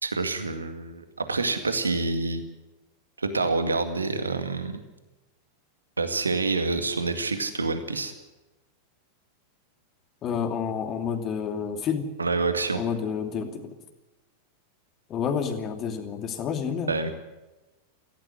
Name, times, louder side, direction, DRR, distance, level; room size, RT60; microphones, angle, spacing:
voice 1, 0.0-2.4 3.2-4.8 6.0-8.1 12.2-12.8 16.9-17.1, right 3 dB, 75° right, 9 dB, 2.1 m, -27 dB
voice 2, 10.2-12.1 12.7-13.8 15.1-17.0, left 7 dB, 30° left, 6 dB, 2.8 m, -29 dB
17.5 x 16.0 x 10.0 m, 1.1 s
figure-of-eight pair, 90°, 0 cm